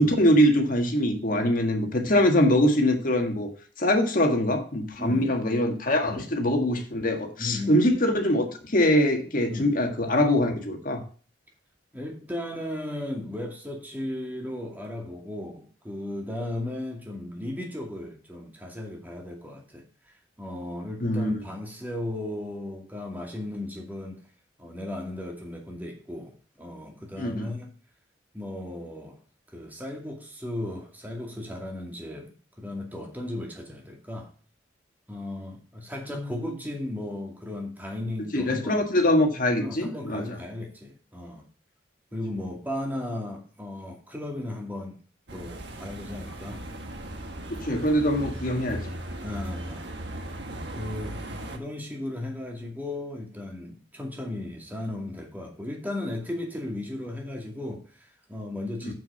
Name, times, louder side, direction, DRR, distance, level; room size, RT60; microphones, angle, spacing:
voice 1, 0.0-3.5 3.8-11.0 21.0-21.4 27.2-27.5 38.3-40.2 47.5-48.9 58.8-58.9, left 1 dB, 50° left, 1.7 m, -23 dB
voice 2, 5.0-5.3 6.0-6.3 7.4-7.8 9.5-9.7 11.9-19.8 20.4-24.2 24.6-27.7 28.3-29.2 29.5-34.3 35.1-38.9 39.6-41.4 42.1-45.0 45.3-46.6 49.2-49.8 50.7-51.2 51.5-58.9, left 1 dB, 10° right, 2.3 m, -36 dB
sound 1, 45.3-51.6, right 1 dB, 70° right, 1.6 m, -37 dB
7.6 x 6.0 x 5.5 m
head